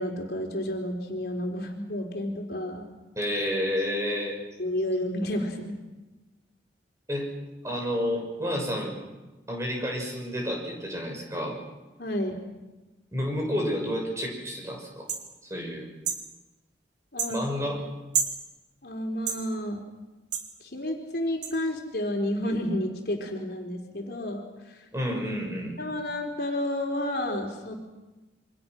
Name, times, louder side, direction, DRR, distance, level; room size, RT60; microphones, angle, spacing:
voice 1, 0.0-2.9 4.6-5.8 12.0-12.4 17.1-17.4 18.8-19.8 20.6-24.9 25.8-27.7, left 1 dB, 60° left, 1 dB, 4.3 m, -31 dB
voice 2, 3.2-4.4 7.1-7.3 7.6-8.9 9.5-11.6 13.1-15.1 15.4-15.9 17.3-17.8 24.9-25.7, equal, 15° right, 1 dB, 6.3 m, -30 dB
sound 1, 15.1-15.2 16.0-16.2 17.2-17.3 18.1-18.4 19.3-19.4 20.3-20.5 21.4-21.5, right 7 dB, 85° right, 3.3 m, -28 dB
28.0 x 25.0 x 6.2 m, 1.1 s
head